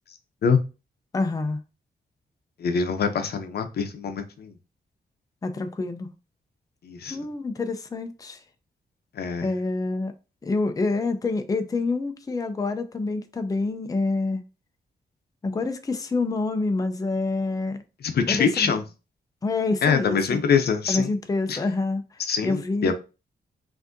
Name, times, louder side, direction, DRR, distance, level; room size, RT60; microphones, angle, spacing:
voice 1, 1.1-1.6 5.4-6.1 7.1-8.4 9.4-10.1 10.4-14.4 15.4-17.8 18.3-18.7 19.4-20.4 20.9-22.9, left 3 dB, 20° left, 0.5 m, -27 dB
voice 2, 2.6-4.6 6.8-7.2 9.2-9.5 18.0-18.8 19.8-21.1 21.5-21.6 22.2-22.9, left 6 dB, 75° left, 0.7 m, -24 dB
5.9 x 2.6 x 2.6 m
wide cardioid pair, 100°, 17 cm